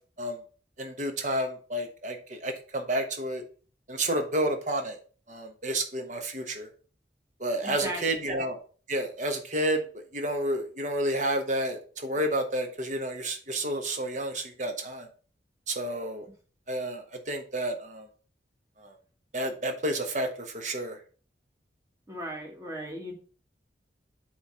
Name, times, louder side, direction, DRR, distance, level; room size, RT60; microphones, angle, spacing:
voice 1, 0.8-3.4 3.9-5.0 5.3-6.7 7.4-8.6 8.9-9.8 10.1-15.1 15.7-16.3 16.7-18.1 18.8-19.0 19.3-21.0 22.7-22.8, right 1 dB, 45° right, 5 dB, 1.2 m, -30 dB
voice 2, 7.6-8.0 22.1-23.1, right 1 dB, 20° right, 1 dB, 1.7 m, -36 dB
7.9 x 3.2 x 5.5 m, 0.40 s
head